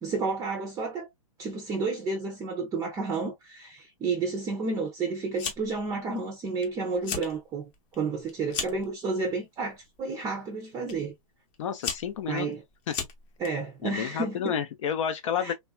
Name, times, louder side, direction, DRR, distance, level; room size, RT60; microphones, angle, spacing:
voice 1, 0.0-1.1 1.4-11.1 12.3-12.6 13.4-14.6 15.4-15.5, right 4 dB, 20° right, 0.5 m, -31 dB
Fire, 5.4-5.9 6.2-6.7 6.9-7.3 7.7-8.9 9.7-10.0 10.9-11.0 11.5-13.5, left 6 dB, 30° left, 0.8 m, -35 dB
voice 2, 11.6-12.5 12.9-13.0 13.8-15.5, left 8 dB, 60° left, 0.6 m, -30 dB
3.2 x 2.3 x 2.2 m
hypercardioid pair, 135°, 18 cm